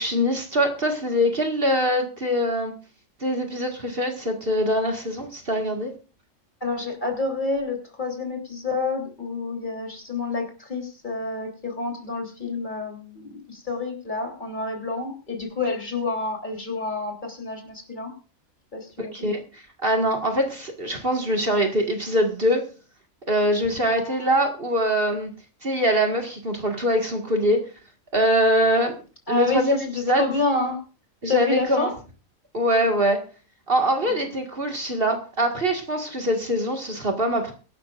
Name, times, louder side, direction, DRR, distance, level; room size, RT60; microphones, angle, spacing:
voice 1, 0.0-2.7 3.2-5.9 19.1-22.7 23.3-25.3 25.6-27.6 28.1-28.9 29.3-29.8 30.0-30.3 31.2-31.9 32.5-33.2 33.7-37.5, equal, 45° right, 3 dB, 2.0 m, -23 dB
voice 2, 6.6-18.1 18.7-19.3 23.9-24.4 29.3-30.8 31.3-31.9 34.0-34.3, left 3 dB, 35° left, 2 dB, 3.6 m, -29 dB
23.0 x 12.0 x 2.5 m, 0.36 s
omnidirectional pair, 1.4 m